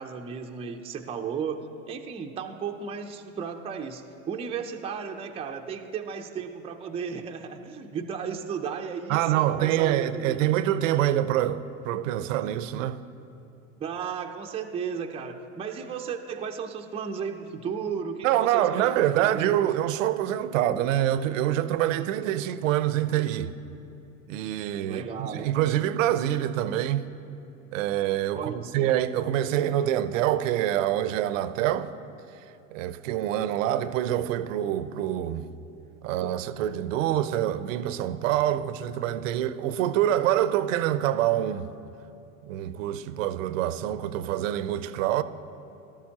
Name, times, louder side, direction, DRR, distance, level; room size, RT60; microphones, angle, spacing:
voice 1, 0.0-10.4 13.8-19.7 24.9-25.5 28.3-28.9, right 6 dB, 15° right, 0.5 m, -34 dB
voice 2, 9.1-13.0 18.2-23.5 24.3-27.1 27.7-31.9 32.7-35.5 36.0-41.7 42.5-45.2, right 12 dB, 70° right, 0.7 m, -26 dB
17.5 x 12.5 x 2.9 m
hypercardioid pair, 110°, 40 cm